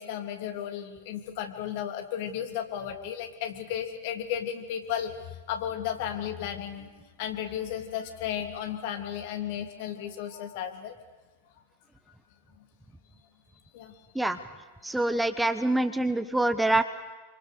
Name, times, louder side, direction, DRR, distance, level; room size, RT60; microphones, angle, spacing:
voice 1, 0.0-10.9 13.7-13.9, left 9 dB, 50° left, 5 dB, 3.2 m, -34 dB
voice 2, 14.8-16.8, right 2 dB, 5° right, 10 dB, 1.2 m, -25 dB
28.0 x 26.0 x 6.9 m, 1.3 s
figure-of-eight pair, 90°, 0 cm